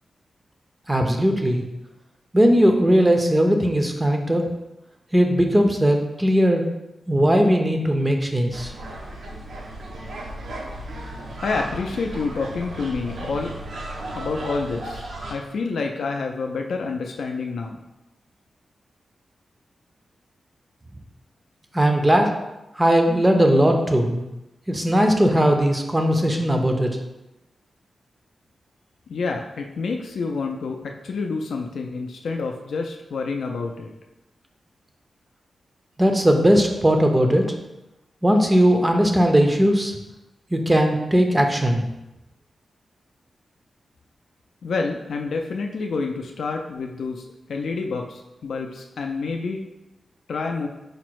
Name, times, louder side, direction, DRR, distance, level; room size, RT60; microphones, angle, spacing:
voice 1, 0.9-1.6 2.3-4.4 5.1-6.6 7.1-8.7 21.7-22.3 22.8-24.2 24.7-26.9 36.0-37.4 38.2-39.9 40.5-41.8, equal, 15° right, 3 dB, 0.4 m, -18 dB
sound 1, 8.5-15.3, right 1 dB, 85° right, 0.7 m, -35 dB
voice 2, 11.4-13.6 14.1-17.8 29.1-33.9 44.6-47.2 47.5-49.6 50.3-50.7, left 4 dB, 85° left, 2 dB, 0.3 m, -28 dB
4.9 x 2.0 x 4.5 m, 0.95 s
wide cardioid pair, 115°, 0 cm